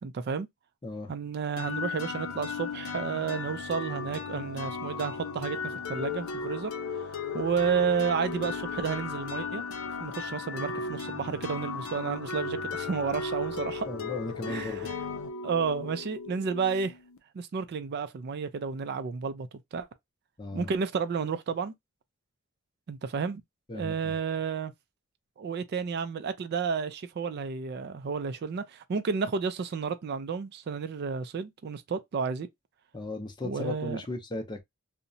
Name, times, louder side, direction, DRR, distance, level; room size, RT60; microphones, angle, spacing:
voice 1, 0.0-0.5 1.1-6.7 7.3-9.6 10.0-13.9 14.5-15.1 15.4-17.0 17.3-19.9 20.5-21.7 22.9-23.4 23.7-24.7 25.4-32.5 33.4-34.0, right 6 dB, 50° right, 0.3 m, -31 dB
sound 1, 1.6-17.2, left 4 dB, 70° left, 0.5 m, -36 dB
voice 2, 13.9-14.9 20.4-20.7 23.7-24.1 32.9-34.6, left 2 dB, 20° left, 0.5 m, -36 dB
2.8 x 2.1 x 2.6 m
head